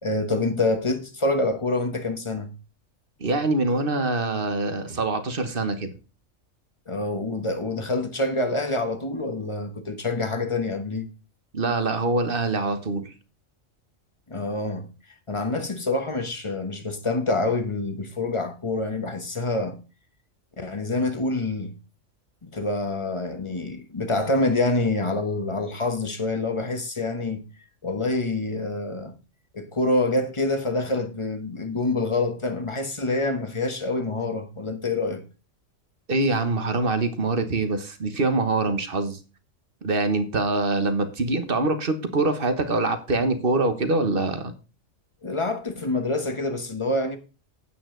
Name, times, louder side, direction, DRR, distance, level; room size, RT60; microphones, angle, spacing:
voice 1, 0.0-2.5 6.9-11.1 14.3-14.9 15.3-19.8 20.6-21.7 22.4-27.4 27.8-29.2 29.5-35.2 45.2-47.2, left 2 dB, 25° left, 1.3 m, -26 dB
voice 2, 3.2-5.9 11.5-13.1 36.1-39.2 39.8-44.5, right 2 dB, 45° right, 1.4 m, -24 dB
9.3 x 8.7 x 3.9 m
omnidirectional pair, 1.4 m